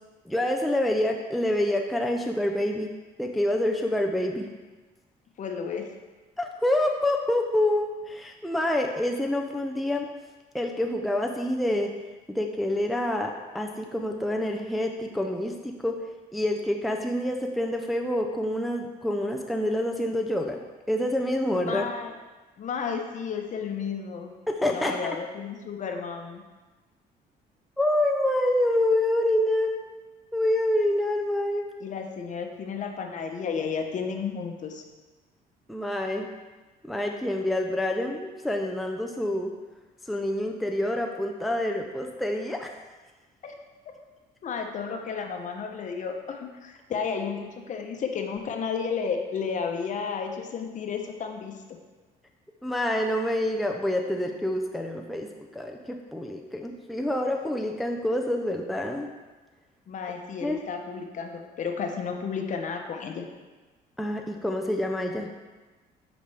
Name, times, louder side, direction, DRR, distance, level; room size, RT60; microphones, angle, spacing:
voice 1, 0.3-2.9 3.2-4.5 6.4-10.1 10.5-11.9 12.3-16.0 16.3-20.6 20.9-21.9 24.5-25.0 27.8-29.8 30.3-31.7 35.7-36.3 36.9-39.5 40.1-42.7 52.6-59.1 60.4-60.6 64.0-65.3, left 1 dB, ahead, 1 dB, 0.5 m, -27 dB
voice 2, 5.4-5.9 21.6-22.1 22.6-24.3 24.7-26.4 31.8-34.8 43.4-43.5 44.4-51.5 59.9-63.2, left 6 dB, 45° left, 4 dB, 0.9 m, -32 dB
8.4 x 5.2 x 3.4 m, 1.2 s
cardioid pair, 110°, 17 cm